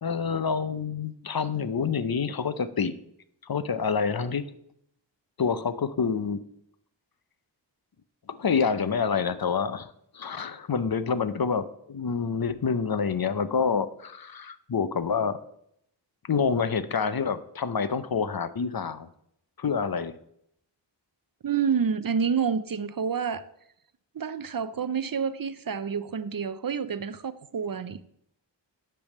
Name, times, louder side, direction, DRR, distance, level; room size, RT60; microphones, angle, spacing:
voice 1, 0.0-2.9 3.5-4.4 5.4-6.4 8.4-9.9 10.1-15.4 16.3-19.1 19.6-20.1, left 6 dB, 55° left, 0.6 m, -27 dB
voice 2, 21.4-23.4 24.1-28.0, right 6 dB, 50° right, 0.5 m, -28 dB
10.0 x 3.4 x 6.5 m
wide cardioid pair, 40°, 45 cm